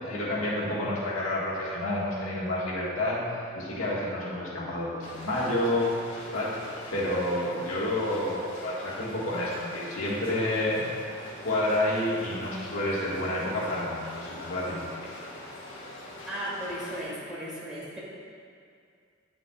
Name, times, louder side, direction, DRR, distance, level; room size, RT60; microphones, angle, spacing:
voice 1, 0.0-3.2 3.5-5.9 6.3-10.9 11.4-15.3, left 1 dB, 90° left, -6 dB, 1.5 m, -29 dB
sound 1, 5.0-17.0, left 1 dB, 60° left, 1.2 m, -43 dB
voice 2, 16.3-18.0, equal, 5° right, -8 dB, 1.5 m, -36 dB
9.5 x 6.0 x 2.3 m, 2.3 s
head